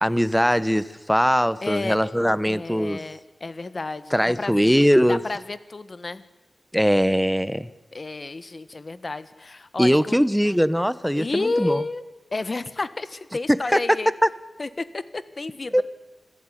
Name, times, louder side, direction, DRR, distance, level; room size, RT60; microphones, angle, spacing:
voice 1, 0.0-3.0 4.1-5.2 6.7-7.7 9.8-11.8 13.5-13.8 14.2-14.3 15.7-15.8, equal, ahead, 16 dB, 1.0 m, -21 dB
voice 2, 1.6-2.0 2.4-4.6 5.1-6.2 7.9-10.2 11.1-12.0 12.3-14.1 14.6-15.8, left 3 dB, 40° left, 14 dB, 1.5 m, -31 dB
26.5 x 16.5 x 10.0 m, 1.1 s
wide cardioid pair, 105°, 0 cm